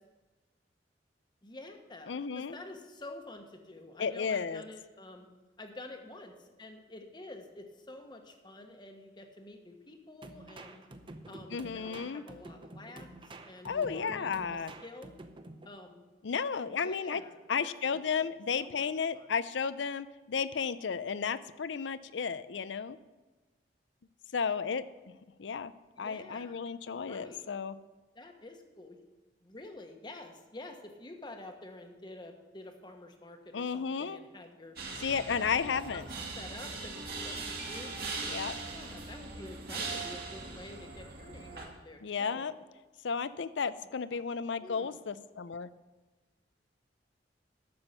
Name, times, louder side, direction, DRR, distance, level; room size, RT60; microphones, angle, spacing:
voice 1, 1.4-5.3 5.6-10.8 11.3-15.2 15.6-16.0 16.7-18.3 18.6-18.9 19.1-19.3 26.0-26.6 27.0-27.4 28.1-29.0 29.4-34.8 35.3-36.0 36.4-38.0 38.6-42.5 43.8-44.3 44.6-45.0, left 2 dB, 25° left, 5 dB, 1.2 m, -49 dB
voice 2, 2.1-2.5 4.0-4.6 11.5-12.2 13.6-14.7 16.2-17.2 17.5-23.0 24.3-24.8 25.4-25.7 26.0-27.7 33.5-34.2 35.0-36.0 38.3-38.6 42.0-42.5 43.0-45.7, left 6 dB, 85° left, 15 dB, 0.5 m, -33 dB
sound 1, 10.2-15.7, right 2 dB, 30° right, 0.7 m, -49 dB
sound 2, 34.8-41.7, right 3 dB, 55° right, 2.2 m, -40 dB
11.5 x 7.1 x 6.7 m, 1.2 s
head